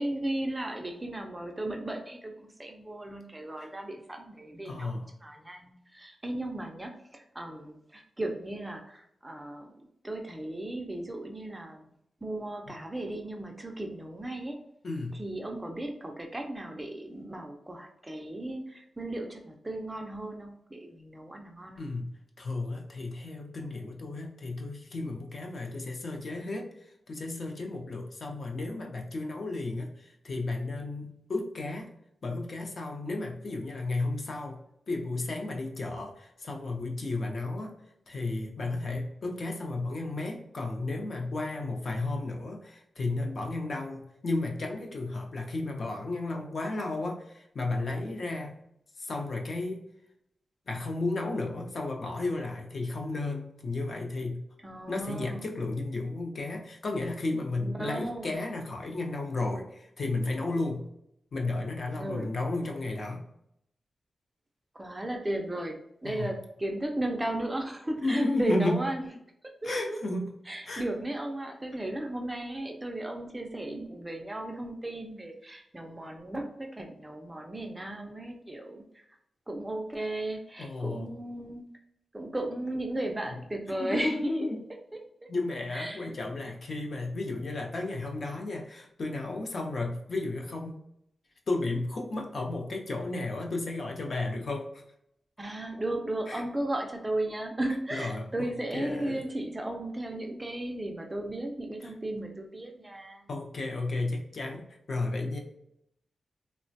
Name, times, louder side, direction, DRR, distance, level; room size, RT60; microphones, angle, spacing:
voice 1, 0.0-11.9 12.2-14.6 15.1-21.8 54.6-55.4 57.6-58.4 62.0-62.3 64.7-69.1 69.6-70.0 70.5-79.1 79.5-81.7 82.1-84.5 84.9-85.0 85.7-86.1 95.4-103.3, right 1 dB, 15° right, 3 dB, 0.3 m, -35 dB
voice 2, 4.6-5.1 12.7-12.8 14.8-15.2 21.8-22.1 22.4-31.9 32.2-34.6 34.9-37.8 38.1-48.6 49.0-49.9 50.7-54.4 54.9-60.9 61.3-63.2 66.0-66.3 68.0-68.8 69.6-70.4 70.7-70.8 80.6-81.1 83.8-84.6 85.3-90.8 91.5-94.8 96.3-96.4 97.9-99.2 103.3-105.4, left 2 dB, 50° left, 2 dB, 0.5 m, -33 dB
3.0 x 2.1 x 2.6 m, 0.76 s
wide cardioid pair, 155°, 0 cm